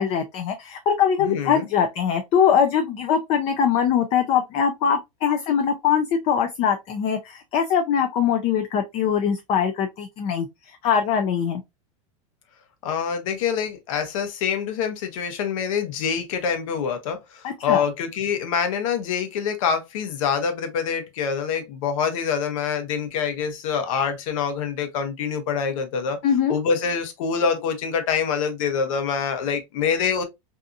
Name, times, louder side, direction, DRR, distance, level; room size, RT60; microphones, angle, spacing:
voice 1, 0.0-10.5 10.8-11.6 17.4-17.8 26.2-26.6, left 7 dB, 35° left, 0.4 m, -22 dB
voice 2, 1.2-1.7 12.8-26.2 26.5-30.2, left 6 dB, 70° left, 0.8 m, -25 dB
2.7 x 2.5 x 2.4 m
supercardioid pair, 145°, 18 cm